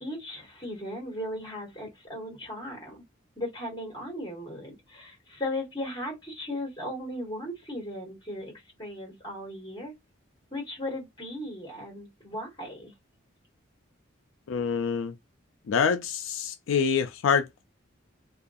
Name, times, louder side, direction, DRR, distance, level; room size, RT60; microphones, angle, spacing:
voice 1, 0.0-3.0 3.4-8.5 8.8-9.9 10.5-12.9, left 1 dB, 20° left, 1.2 m, -37 dB
voice 2, 14.5-15.1 15.7-17.6, left 6 dB, 80° left, 0.4 m, -26 dB
2.4 x 2.3 x 2.5 m
head